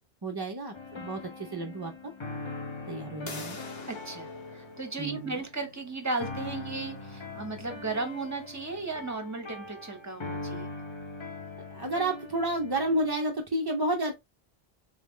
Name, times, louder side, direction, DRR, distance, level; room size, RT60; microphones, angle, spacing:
voice 1, 0.2-1.9 2.9-3.6 5.0-5.4 11.7-14.1, right 1 dB, 35° right, 0.4 m, -31 dB
sound 1, 0.7-13.1, left 3 dB, 35° left, 0.5 m, -41 dB
sound 2, 3.3-8.9, left 3 dB, 65° left, 1.2 m, -48 dB
voice 2, 3.9-10.7, right 3 dB, 15° right, 0.9 m, -35 dB
3.6 x 3.6 x 3.1 m
omnidirectional pair, 1.1 m